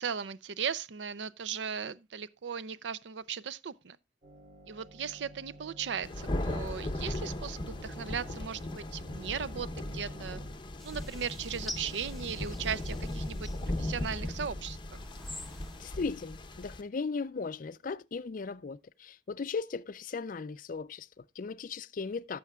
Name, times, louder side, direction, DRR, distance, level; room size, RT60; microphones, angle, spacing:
voice 1, 0.0-4.0 4.7-10.4 10.8-13.5 13.8-15.0, right 7 dB, 80° right, 0.5 m, -37 dB
sound 1, 4.2-10.5, right 1 dB, 30° right, 3.6 m, -51 dB
Thunder, 6.0-16.8, left 1 dB, 25° left, 0.8 m, -37 dB
sound 2, 10.8-14.3 14.9-16.0, left 1 dB, ahead, 1.0 m, -47 dB
voice 2, 15.8-22.4, left 4 dB, 50° left, 0.4 m, -37 dB
16.5 x 7.0 x 2.3 m
head